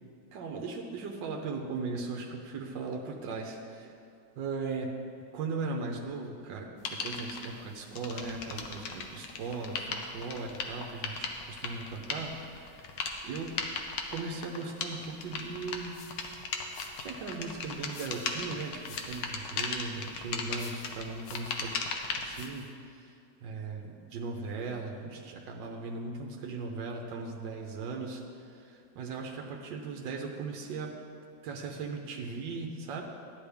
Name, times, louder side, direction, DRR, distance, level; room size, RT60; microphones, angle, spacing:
voice 1, 0.3-3.9 4.4-5.0 5.3-13.5 14.1-16.0 17.0-21.8 22.1-31.0 31.4-33.0, right 4 dB, 85° right, 1 dB, 1.5 m, -38 dB
sound 1, 6.9-7.5 7.9-22.5, left 5 dB, 90° left, 1.6 m, -37 dB
sound 2, 15.5-22.9, left 6 dB, 65° left, 0.7 m, -54 dB
13.5 x 9.7 x 3.5 m, 2.4 s
omnidirectional pair, 2.0 m